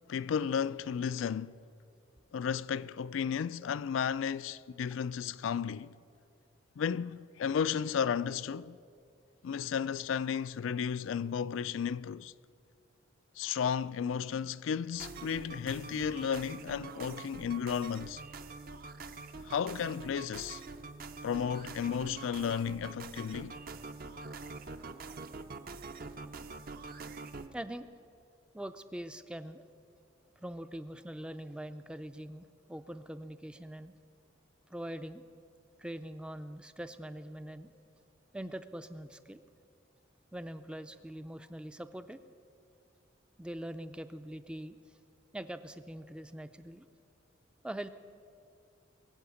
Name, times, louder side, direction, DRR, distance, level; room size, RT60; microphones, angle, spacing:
voice 1, 0.1-1.6 2.3-5.9 6.8-8.8 9.4-12.3 13.4-18.2 19.4-20.6 21.2-23.6, left 7 dB, 80° left, 0.4 m, -33 dB
sound 1, 14.9-27.5, right 4 dB, 45° right, 0.6 m, -45 dB
voice 2, 27.5-27.9 28.5-29.6 30.4-33.9 34.7-35.2 35.8-37.7 38.3-39.4 40.3-42.2 43.4-44.8 45.3-46.8 47.6-47.9, right 1 dB, 5° right, 0.4 m, -43 dB
22.0 x 7.8 x 7.0 m
head